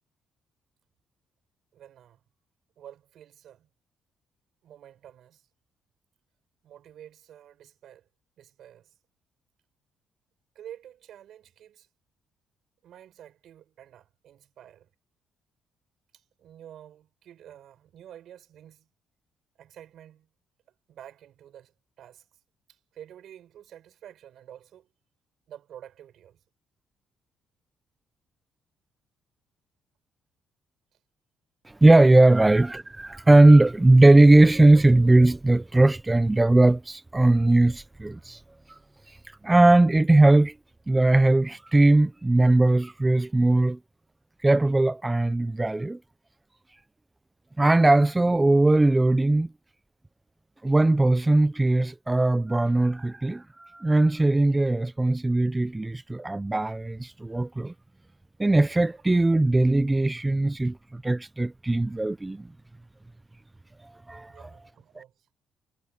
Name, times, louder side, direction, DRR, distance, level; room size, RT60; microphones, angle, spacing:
voice 1, 1.7-2.2 2.8-3.7 4.6-5.5 6.6-8.1 8.4-8.9 10.6-11.9 12.8-14.9 16.1-18.9 19.6-20.3 20.9-22.4 22.7-24.9 25.5-26.4 32.3-32.4 64.3-65.3, right 10 dB, 70° right, 5.3 m, -49 dB
voice 2, 31.7-38.4 38.7-38.8 39.1-39.2 39.4-40.5 40.9-43.8 44.4-46.0 47.6-49.5 50.6-57.7 58.4-62.5 64.1-64.5 65.0-65.1, right 2 dB, 15° right, 0.6 m, -19 dB
cardioid pair, 80°, 0 cm